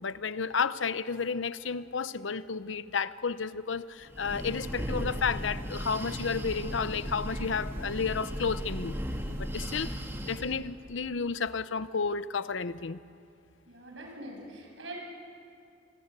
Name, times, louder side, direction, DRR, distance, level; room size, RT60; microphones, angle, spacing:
voice 1, 0.0-8.9 9.4-10.0 10.2-13.0, left 5 dB, 85° left, 14 dB, 0.8 m, -32 dB
Breathing, 4.0-10.6, equal, 15° right, 2.0 m, -36 dB
voice 2, 9.5-10.0 13.7-14.9, right 1 dB, 80° right, 1 dB, 7.1 m, -45 dB
27.0 x 22.0 x 8.3 m, 2.5 s
head